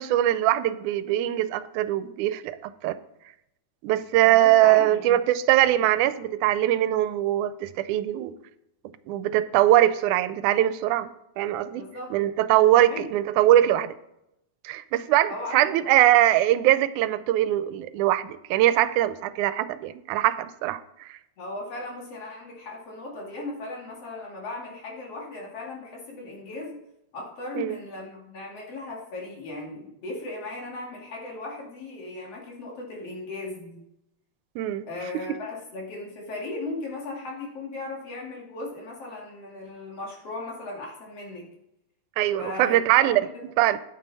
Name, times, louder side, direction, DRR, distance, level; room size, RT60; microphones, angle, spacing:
voice 1, 0.0-3.0 3.8-8.3 9.1-11.8 12.1-13.9 14.6-21.2 27.6-27.8 34.6-34.9 42.2-43.2 43.6-43.8, right 13 dB, 90° right, 14 dB, 2.1 m, -22 dB
voice 2, 4.2-5.2 11.7-12.1 12.7-13.1 15.3-15.7 21.4-26.8 27.1-33.8 34.9-41.5 42.4-43.4, left 2 dB, 55° left, -2 dB, 3.3 m, -37 dB
9.4 x 9.2 x 4.1 m, 0.82 s
omnidirectional pair, 3.4 m